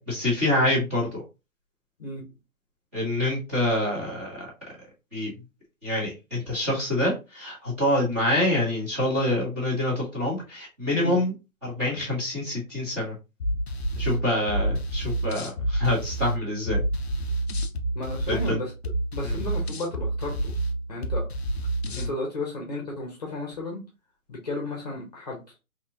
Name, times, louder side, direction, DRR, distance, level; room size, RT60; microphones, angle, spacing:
voice 1, 0.1-1.2 2.9-4.5 5.1-5.3 5.8-11.3 11.6-13.1 14.0-16.8 18.3-18.6 19.2-19.3 21.9-22.1, left 1 dB, 10° right, -10 dB, 1.1 m, -26 dB
sound 1, 13.4-22.1, right 1 dB, 45° left, 0.6 m, -29 dB
voice 2, 17.9-18.7 19.1-20.5 20.9-21.3 22.0-23.8 24.3-25.4, left 2 dB, 30° left, 0 dB, 1.0 m, -33 dB
4.0 x 2.9 x 2.8 m, 0.27 s
hypercardioid pair, 170°, 43 cm